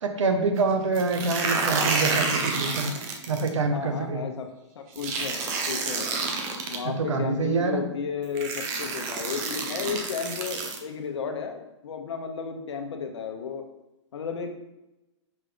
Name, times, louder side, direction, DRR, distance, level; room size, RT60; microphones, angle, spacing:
voice 1, 0.0-2.9 3.3-4.2 6.8-7.8, right 3 dB, 80° right, 6 dB, 1.1 m, -26 dB
sound 1, 0.9-3.5 5.0-6.8 7.8-7.9 8.3-10.8, right 4 dB, 20° right, 0.5 m, -29 dB
voice 2, 3.7-4.5 4.7-6.2 6.7-13.6 14.1-14.5, left 6 dB, 65° left, 4 dB, 1.2 m, -33 dB
5.4 x 3.8 x 5.1 m, 0.95 s
hypercardioid pair, 165°, 16 cm